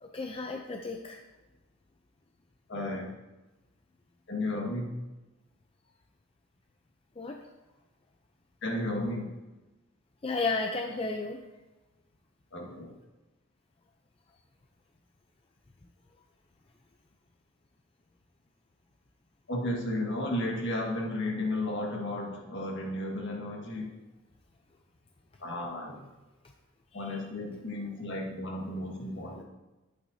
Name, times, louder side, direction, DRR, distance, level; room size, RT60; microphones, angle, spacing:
voice 1, 0.0-1.2 7.2-7.4 10.2-11.4, left 3 dB, 25° left, 3 dB, 0.5 m, -33 dB
voice 2, 2.7-3.1 4.3-5.0 8.6-9.3 12.5-12.9 19.5-23.9 25.4-26.0 26.9-29.4, left 1 dB, 55° left, 0 dB, 1.7 m, -33 dB
11.5 x 8.7 x 2.7 m, 1.1 s
head